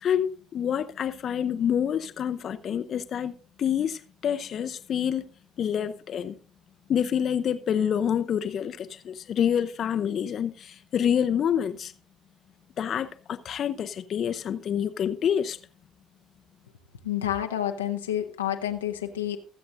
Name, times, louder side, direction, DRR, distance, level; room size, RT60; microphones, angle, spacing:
voice 1, 0.0-3.3 3.6-5.3 5.6-6.4 6.9-11.9 12.8-15.6, left 8 dB, 50° left, 0.7 m, -27 dB
voice 2, 17.0-19.4, left 11 dB, 80° left, 0.8 m, -29 dB
23.0 x 7.8 x 2.6 m
figure-of-eight pair, 50°, 0 cm